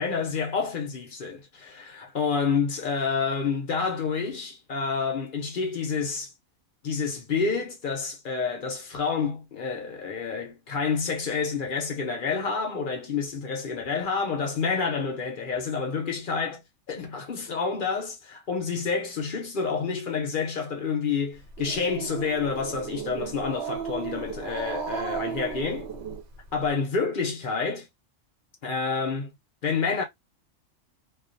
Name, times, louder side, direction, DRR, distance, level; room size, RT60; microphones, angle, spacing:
voice 1, 0.0-6.3 6.8-16.6 16.9-25.9 26.5-27.9 28.6-29.3 29.6-30.0, left 5 dB, 50° left, 0.7 m, -28 dB
Growling, 21.3-26.7, right 7 dB, 60° right, 0.8 m, -35 dB
2.4 x 2.3 x 2.5 m
omnidirectional pair, 1.3 m